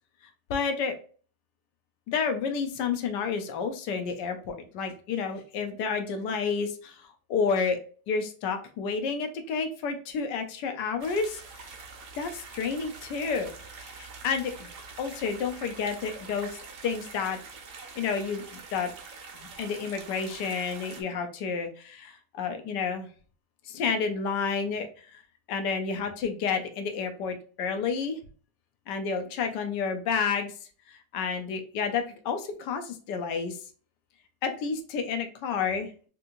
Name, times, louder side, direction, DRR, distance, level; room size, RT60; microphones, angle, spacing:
voice 1, 0.5-0.9 2.1-7.8 8.1-11.4 12.2-14.7 15.0-16.5 16.8-17.4 18.0-18.9 19.3-23.1 23.7-24.9 25.1-25.2 25.5-28.2 28.9-30.5 31.1-33.6 34.4-36.1, left 5 dB, 85° left, 7 dB, 1.2 m, -30 dB
sound 1, 11.0-21.0, right 4 dB, 75° right, 1.3 m, -45 dB
3.5 x 2.9 x 2.5 m, 0.40 s
omnidirectional pair, 1.8 m